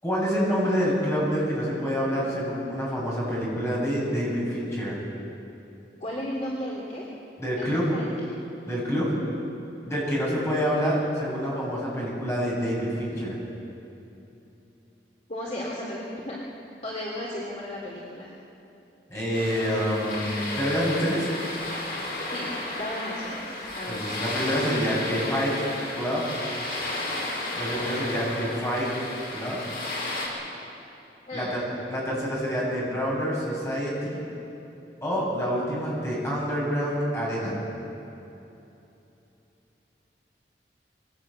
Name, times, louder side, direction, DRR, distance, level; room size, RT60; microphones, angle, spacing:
voice 1, 0.0-5.0 7.4-7.9 8.7-9.1 9.8-13.4 19.1-21.3 23.9-25.7 25.9-26.2 27.6-28.9 29.3-29.6 31.3-31.6 31.9-34.2 35.0-37.6, equal, 15° left, -5 dB, 7.9 m, -27 dB
voice 2, 6.0-7.0 7.6-8.3 15.3-18.3 22.3-22.5 22.7-24.1 31.3-31.5, left 1 dB, 40° left, -4 dB, 2.9 m, -34 dB
Auchmithie harbour, 19.3-30.3, left 2 dB, 55° left, 5.9 m, -33 dB
22.5 x 18.5 x 8.7 m, 2.9 s
head